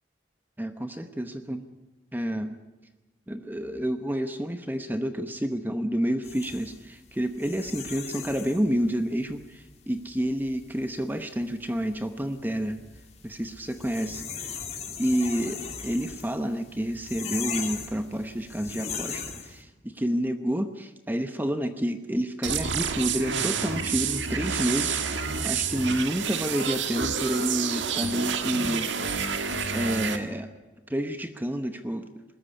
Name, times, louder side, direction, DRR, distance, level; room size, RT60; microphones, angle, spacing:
voice 1, 0.6-1.7 2.1-2.6 3.3-12.8 13.2-14.6 15.0-29.3 29.7-30.5 30.9-32.1, equal, 10° right, 8 dB, 0.8 m, -29 dB
sound 1, 6.2-19.6, left 6 dB, 35° left, 2.4 m, -39 dB
sound 2, 22.4-30.2, right 6 dB, 80° right, 1.7 m, -29 dB
20.5 x 13.5 x 9.8 m, 1.2 s
head